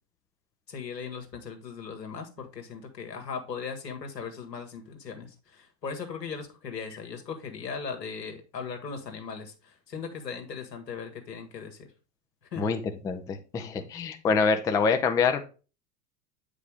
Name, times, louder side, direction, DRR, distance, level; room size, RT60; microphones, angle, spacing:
voice 1, 0.7-5.3 5.6-9.5 9.9-11.9 12.5-12.7 13.6-13.9, left 5 dB, 85° left, 4 dB, 1.8 m, -38 dB
voice 2, 12.6-15.4, left 5 dB, 10° left, 7 dB, 0.4 m, -26 dB
8.1 x 5.1 x 3.4 m, 0.33 s
figure-of-eight pair, 90°, 48 cm